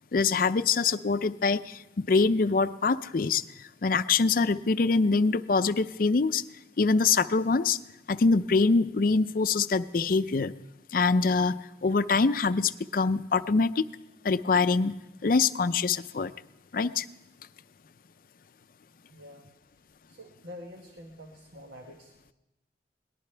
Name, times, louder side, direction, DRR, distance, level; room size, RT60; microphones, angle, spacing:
voice 1, 0.1-3.4 3.8-6.4 6.8-7.8 8.1-10.5 10.9-13.8 14.2-14.9 15.2-16.3 16.7-17.1, left 4 dB, 50° left, 13 dB, 0.5 m, -24 dB
voice 2, 19.1-19.5 20.1-22.3, left 1 dB, 80° right, 2 dB, 1.4 m, -47 dB
22.0 x 19.0 x 3.4 m, 0.99 s
head